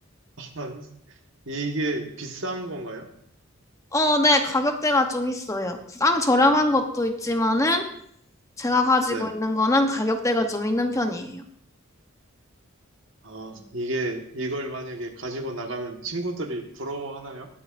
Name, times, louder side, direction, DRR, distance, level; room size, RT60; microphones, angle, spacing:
voice 1, 0.4-0.9 1.5-3.1 9.1-9.3 13.2-17.5, right 2 dB, 65° right, 3 dB, 1.5 m, -32 dB
voice 2, 3.9-7.8 8.6-11.4, left 2 dB, 15° left, 5 dB, 0.8 m, -22 dB
21.0 x 8.5 x 2.5 m, 0.68 s
head